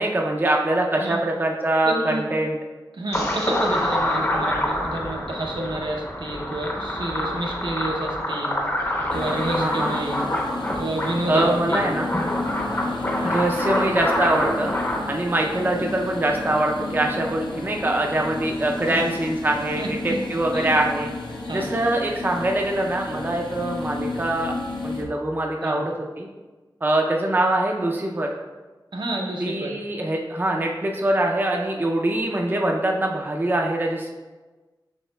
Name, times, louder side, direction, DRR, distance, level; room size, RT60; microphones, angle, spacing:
voice 1, 0.0-2.6 9.6-9.9 11.3-12.1 13.2-14.7 15.1-21.1 21.5-24.5 24.8-26.3 26.8-28.3 29.4-34.1, right 1 dB, 25° right, 1 dB, 0.4 m, -23 dB
voice 2, 1.9-2.2 2.9-8.6 9.1-10.2 10.8-11.9 18.9-19.1 19.8-20.2 20.5-20.7 21.4-21.7 25.6-25.8 28.9-29.7, right 1 dB, 70° right, 0 dB, 0.7 m, -29 dB
sound 1, 3.1-15.0, left 1 dB, 35° left, 0.7 m, -26 dB
sound 2, 9.1-25.0, left 2 dB, 65° left, 0.7 m, -32 dB
7.0 x 2.9 x 2.2 m, 1.2 s
wide cardioid pair, 75°, 8 cm